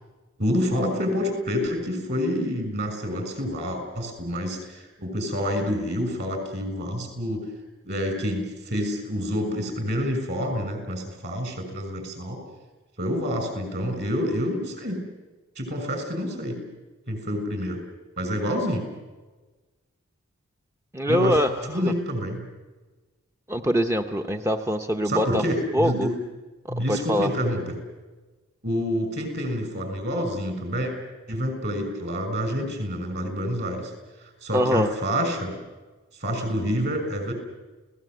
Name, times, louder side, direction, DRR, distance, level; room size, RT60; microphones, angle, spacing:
voice 1, 0.4-7.5 7.8-12.4 13.0-15.0 15.6-16.6 17.1-17.8 18.2-18.9 21.1-21.4 21.7-22.4 25.0-26.1 26.7-27.6 28.6-30.9 31.3-33.9 34.4-35.5 36.2-37.3, equal, 50° right, 6 dB, 6.5 m, -27 dB
voice 2, 20.9-21.9 23.5-25.4 25.7-26.1 26.7-27.3 34.5-34.9, equal, 15° right, 5 dB, 0.7 m, -24 dB
29.5 x 18.0 x 7.9 m, 1.2 s
head